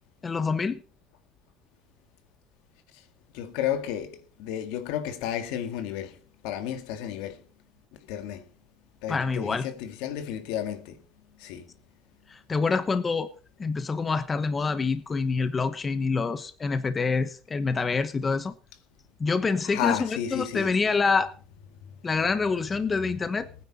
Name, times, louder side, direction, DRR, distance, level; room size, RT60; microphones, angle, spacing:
voice 1, 0.2-0.8 9.1-9.7 12.3-13.3 13.6-18.5 19.2-21.3 22.0-23.5, left 4 dB, 20° left, 1.0 m, -26 dB
voice 2, 3.3-6.1 6.4-7.4 8.1-8.4 9.0-10.9 11.4-11.7 19.6-20.7, left 10 dB, 90° left, 1.9 m, -32 dB
20.0 x 9.7 x 4.2 m
cardioid pair, 135°, 0 cm